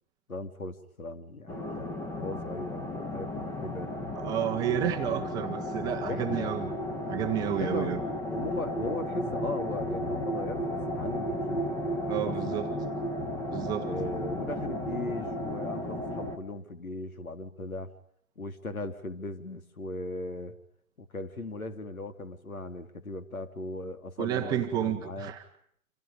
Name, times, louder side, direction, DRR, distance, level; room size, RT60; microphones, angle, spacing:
voice 1, 0.3-4.0 4.5-5.3 6.0-6.6 7.5-12.9 13.8-17.9 18.4-20.6 21.0-25.3, left 2 dB, 75° left, 3.8 m, -38 dB
sound 1, 1.5-16.4, equal, 5° left, 1.2 m, -34 dB
voice 2, 4.1-6.7 7.1-8.0 12.1-12.7 13.5-13.9 24.2-25.4, right 11 dB, 10° right, 1.0 m, -31 dB
29.5 x 27.0 x 5.4 m
figure-of-eight pair, 140°, 42 cm